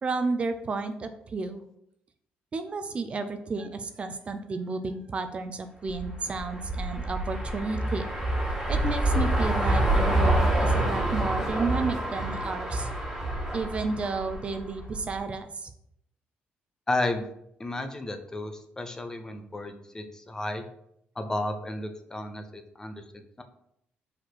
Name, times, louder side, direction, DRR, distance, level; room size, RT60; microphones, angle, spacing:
voice 1, 0.0-1.6 2.5-8.1 8.7-12.9 13.5-15.7, right 4 dB, 30° right, 9 dB, 0.5 m, -32 dB
sound 1, 5.9-15.1, right 1 dB, 5° right, 2.4 m, -27 dB
voice 2, 16.9-17.3 17.6-20.6 21.2-23.4, left 2 dB, 15° left, 7 dB, 0.7 m, -33 dB
5.2 x 4.3 x 6.1 m, 0.75 s
cardioid pair, 145°, 4 cm